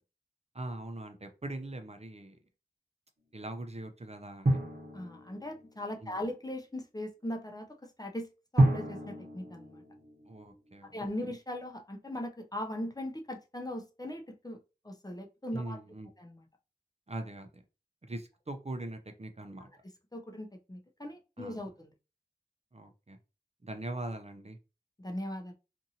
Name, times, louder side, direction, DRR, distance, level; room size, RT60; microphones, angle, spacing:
voice 1, 0.5-2.4 3.3-4.6 6.0-6.2 10.3-11.0 15.5-16.1 17.1-17.6 18.0-19.7 21.4-21.6 22.7-23.2 23.6-24.6, right 2 dB, 40° right, 6 dB, 0.5 m, -41 dB
Drum, 4.4-6.0 8.6-10.7, right 1 dB, 65° right, 1.0 m, -30 dB
voice 2, 4.9-8.3 8.5-9.8 10.9-14.6 14.8-15.8 16.2-16.5 20.1-21.9 25.0-25.5, left 1 dB, 20° left, 3 dB, 0.5 m, -39 dB
2.6 x 2.6 x 2.7 m, 0.30 s
wide cardioid pair, 45°, 17 cm